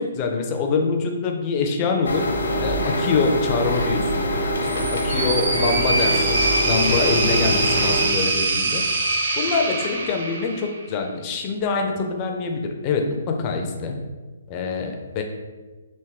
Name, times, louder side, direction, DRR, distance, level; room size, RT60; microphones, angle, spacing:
voice 1, 0.0-2.3 2.5-4.5 4.7-8.8 9.4-14.0 14.5-15.2, left 4 dB, 30° left, 3 dB, 0.5 m, -25 dB
sound 1, 2.0-8.1, equal, 70° left, 0.7 m, -25 dB
sound 2, 4.6-10.8, right 2 dB, 50° right, 0.7 m, -23 dB
3.6 x 2.5 x 3.4 m, 1.3 s
figure-of-eight pair, 135°, 0 cm